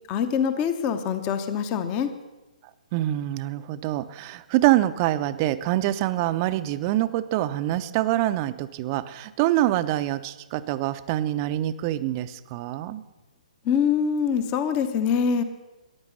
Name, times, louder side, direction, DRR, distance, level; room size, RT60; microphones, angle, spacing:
voice 1, 0.1-2.1 13.6-15.4, left 7 dB, 25° left, 10 dB, 0.8 m, -24 dB
voice 2, 2.9-13.0, right 14 dB, 30° right, 13 dB, 0.6 m, -25 dB
14.5 x 10.5 x 6.8 m, 1.1 s
figure-of-eight pair, 130°, 4 cm